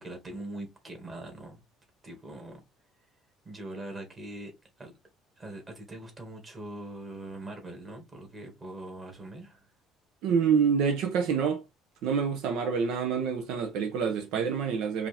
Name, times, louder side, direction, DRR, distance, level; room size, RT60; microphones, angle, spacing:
voice 1, 0.0-1.6 2.0-2.6 3.5-4.9 5.4-9.6, right 1 dB, 20° right, 2.0 m, -42 dB
voice 2, 10.2-11.6 12.0-15.1, right 6 dB, 70° right, 0.9 m, -27 dB
5.1 x 2.8 x 3.5 m
cardioid pair, 145°, 0 cm